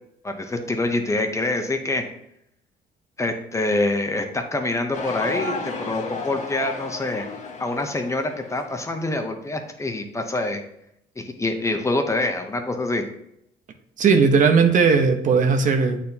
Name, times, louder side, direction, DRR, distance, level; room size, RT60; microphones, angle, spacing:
voice 1, 0.2-2.0 3.2-7.3 7.6-10.6 11.2-13.0, left 2 dB, 15° left, 5 dB, 0.7 m, -25 dB
sound 1, 4.9-8.9, left 4 dB, 45° left, 1.2 m, -33 dB
voice 2, 14.0-16.0, right 5 dB, 50° right, 6 dB, 0.8 m, -17 dB
8.3 x 4.4 x 2.8 m, 0.77 s
cardioid pair, 110°, 17 cm